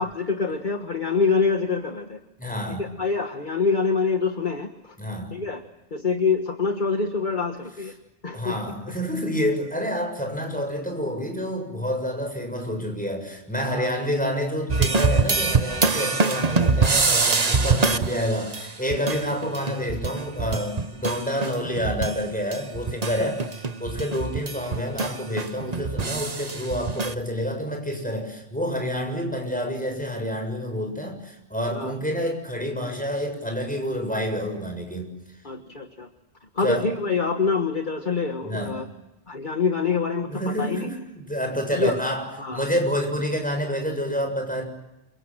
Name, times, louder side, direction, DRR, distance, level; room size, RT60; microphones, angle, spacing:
voice 1, 0.0-2.2 2.8-5.0 5.3-5.6 5.9-7.9 8.2-8.6 13.6-13.9 17.5-17.9 23.2-23.3 31.8-31.9 35.4-36.1 36.6-38.9 39.3-40.9 41.7-41.9 42.4-42.7, left 4 dB, 45° left, 5 dB, 1.6 m, -25 dB
voice 2, 2.4-2.9 5.0-5.4 8.3-23.5 23.8-35.1 36.6-36.9 38.4-38.8 40.3-44.6, equal, 5° left, 4 dB, 7.0 m, -28 dB
sound 1, 14.7-22.2 22.5-27.1, right 4 dB, 40° right, 1.1 m, -24 dB
28.5 x 24.5 x 7.5 m, 0.96 s
omnidirectional pair, 1.1 m